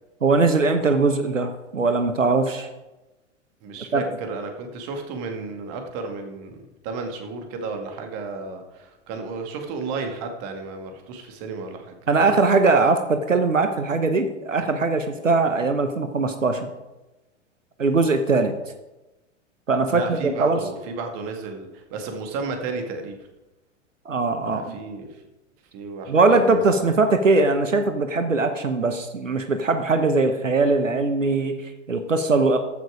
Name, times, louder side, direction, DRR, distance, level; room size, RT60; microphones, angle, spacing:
voice 1, 0.2-2.7 3.9-4.0 12.1-16.7 17.8-18.5 19.7-20.6 24.0-24.7 26.1-32.6, right 3 dB, 85° right, 8 dB, 1.1 m, -21 dB
voice 2, 3.6-6.6 6.8-11.9 19.9-23.2 24.4-25.2 25.7-27.0, right 4 dB, 40° right, 4 dB, 2.1 m, -33 dB
14.0 x 6.5 x 5.0 m, 1.0 s
figure-of-eight pair, 95°, 37 cm